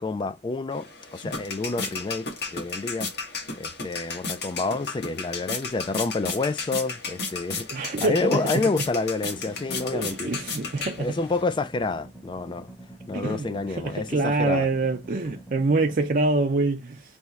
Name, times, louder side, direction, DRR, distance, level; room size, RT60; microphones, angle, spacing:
voice 1, 0.0-3.1 3.6-10.3 10.6-12.7 13.1-14.7, left 3 dB, 25° left, 0.3 m, -29 dB
sound 1, 0.7-11.4, left 4 dB, 65° left, 1.3 m, -34 dB
voice 2, 7.7-8.4 9.9-11.1 13.1-17.0, right 3 dB, 50° right, 0.5 m, -25 dB
sound 2, 9.4-16.1, right 1 dB, 10° left, 0.9 m, -46 dB
3.5 x 3.0 x 4.1 m
head